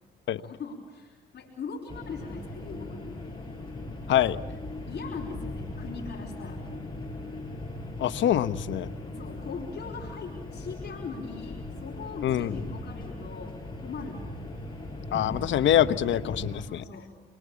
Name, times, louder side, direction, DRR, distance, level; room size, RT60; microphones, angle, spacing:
voice 1, 0.4-3.3 4.9-6.6 9.1-14.4 16.5-17.2, left 5 dB, 55° left, -2 dB, 4.8 m, -41 dB
sound 1, 1.9-16.6, left 2 dB, 25° left, 7.2 m, -39 dB
voice 2, 8.0-8.9 12.2-12.6 15.1-16.8, left 11 dB, 70° left, 13 dB, 1.1 m, -24 dB
28.5 x 23.5 x 8.5 m, 1.2 s
cardioid pair, 90°, 20 cm